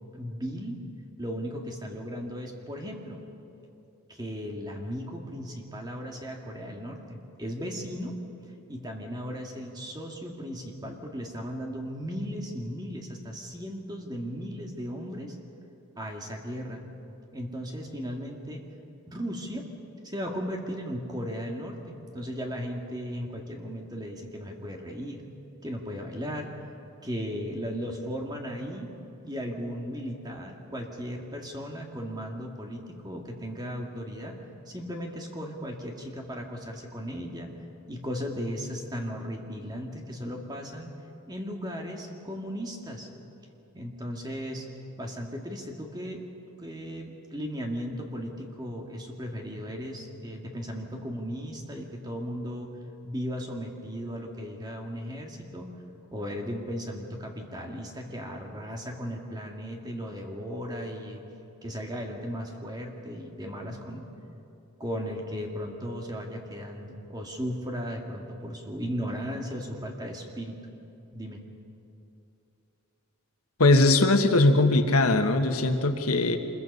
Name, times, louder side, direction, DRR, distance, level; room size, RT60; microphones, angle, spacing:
voice 1, 0.1-0.8 1.2-3.2 4.1-8.2 8.7-15.4 16.0-16.8 17.3-18.6 19.1-19.7 20.0-25.2 25.6-26.5 27.0-28.9 29.2-34.4 34.7-37.5 37.9-40.9 41.3-43.1 43.7-44.7 45.0-46.2 46.6-52.7 53.0-55.7 56.1-61.2 61.6-64.1 64.8-70.6 71.1-71.4, equal, 20° right, 1 dB, 2.0 m, -36 dB
voice 2, 73.6-76.4, left 2 dB, 85° left, 6 dB, 1.4 m, -20 dB
25.5 x 21.5 x 5.5 m, 2.8 s
head